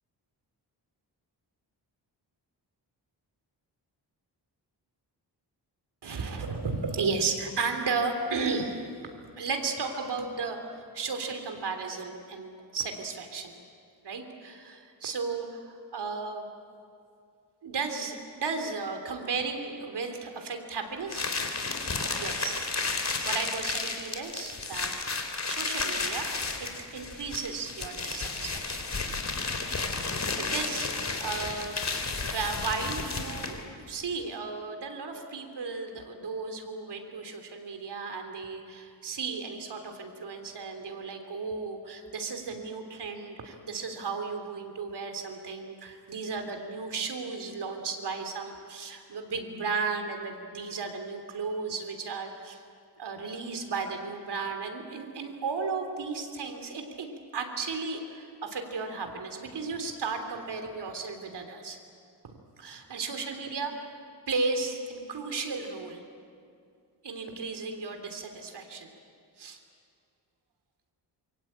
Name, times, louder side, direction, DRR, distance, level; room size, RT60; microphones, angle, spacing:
voice 1, 6.0-13.5 14.0-16.5 17.6-21.3 22.2-22.6 23.2-24.9 25.5-26.3 26.6-28.9 30.4-31.7 32.2-52.6 53.0-61.8 62.2-64.0 64.3-66.0 67.0-68.9 69.4-69.6, right 4 dB, 70° right, 5 dB, 3.3 m, -34 dB
sound 1, 21.1-33.7, left 3 dB, 40° left, 3.7 m, -32 dB
27.0 x 24.0 x 8.8 m, 2.4 s
cardioid pair, 95°, 42 cm